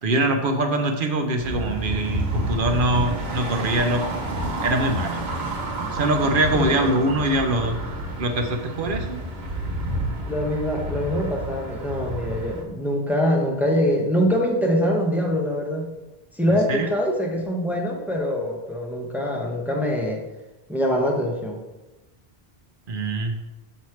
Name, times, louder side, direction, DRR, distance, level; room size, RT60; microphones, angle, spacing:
voice 1, 0.0-4.0 4.6-5.2 5.9-7.8 8.2-9.2 16.7-16.9 22.9-23.4, right 1 dB, 60° right, 5 dB, 0.9 m, -23 dB
sound 1, 1.4-12.6, right 1 dB, 75° right, 1.3 m, -29 dB
voice 2, 6.5-6.9 10.2-15.9 16.3-20.2 20.7-21.6, equal, ahead, 0 dB, 0.8 m, -24 dB
6.3 x 3.1 x 5.7 m, 1.0 s
omnidirectional pair, 1.1 m